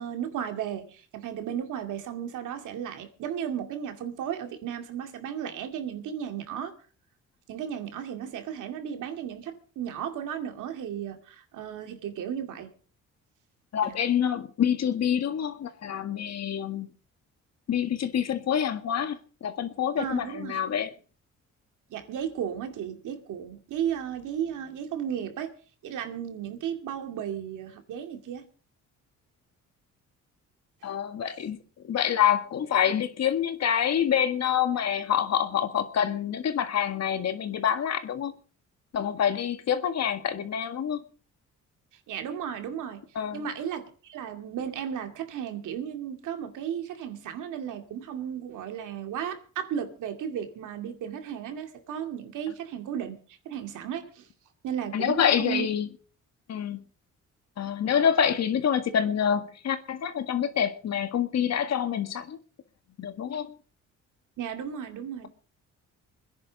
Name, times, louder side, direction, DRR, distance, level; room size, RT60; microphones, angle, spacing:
voice 1, 0.0-6.7 7.5-12.7 13.8-14.0 20.0-20.6 21.9-25.5 25.8-28.4 30.8-30.9 42.1-43.0 43.3-53.2 53.4-54.3 54.6-55.7 64.4-65.3, right 9 dB, 80° right, 2.4 m, -34 dB
voice 2, 13.7-16.9 17.7-20.9 30.8-31.6 31.8-38.3 38.9-41.0 43.2-43.4 54.9-55.9 56.5-56.8 57.6-62.4 63.0-63.6, left 8 dB, 60° left, 1.8 m, -27 dB
24.5 x 10.5 x 4.0 m
cardioid pair, 90°, 30 cm